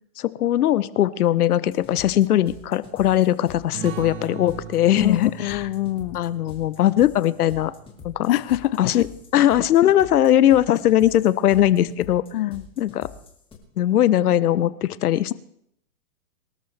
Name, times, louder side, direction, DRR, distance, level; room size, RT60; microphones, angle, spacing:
voice 1, 0.2-5.7 6.1-7.7 8.0-8.3 8.8-9.1 9.3-12.2 12.8-13.1 13.8-15.3, left 12 dB, 80° left, 16 dB, 0.9 m, -20 dB
sound 1, 1.7-13.5, left 5 dB, 10° left, 2.3 m, -45 dB
sound 2, 3.7-8.9, right 9 dB, 40° right, 1.5 m, -40 dB
voice 2, 5.0-6.2 8.3-9.0 12.3-12.6, left 14 dB, 45° left, 15 dB, 0.5 m, -24 dB
23.5 x 13.0 x 3.4 m, 0.73 s
hypercardioid pair, 140°, 45 cm